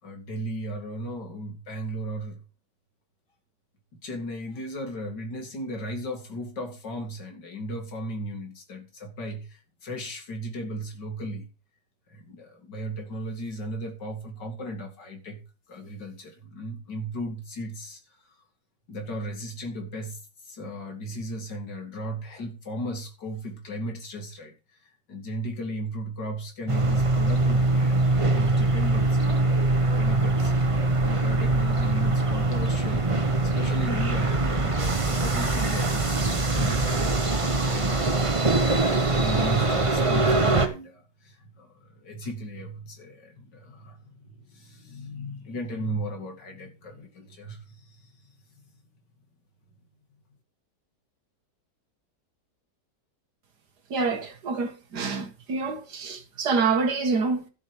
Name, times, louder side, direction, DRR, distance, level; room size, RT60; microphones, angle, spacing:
voice 1, 0.0-2.4 3.9-11.5 12.1-18.2 18.9-24.8 25.1-48.3, right 1 dB, 80° left, 3.0 m, -36 dB
sound 1, 26.7-40.7, right 2 dB, 20° right, 1.0 m, -23 dB
voice 2, 53.9-57.5, right 4 dB, 70° right, 2.1 m, -27 dB
12.5 x 7.6 x 5.2 m
omnidirectional pair, 1.9 m